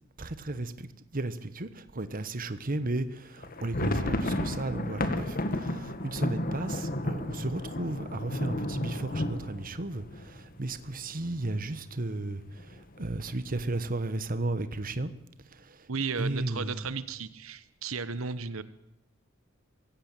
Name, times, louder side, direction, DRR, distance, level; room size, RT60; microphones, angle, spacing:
voice 1, 0.2-15.1 15.5-15.9 16.2-16.9, right 2 dB, 45° right, 1.3 m, -34 dB
sound 1, 3.4-11.1 11.4-11.5 11.8-12.0 12.6-13.1, left 1 dB, 45° left, 1.9 m, -32 dB
voice 2, 15.9-18.6, right 5 dB, 90° right, 1.2 m, -34 dB
23.5 x 16.5 x 9.1 m
head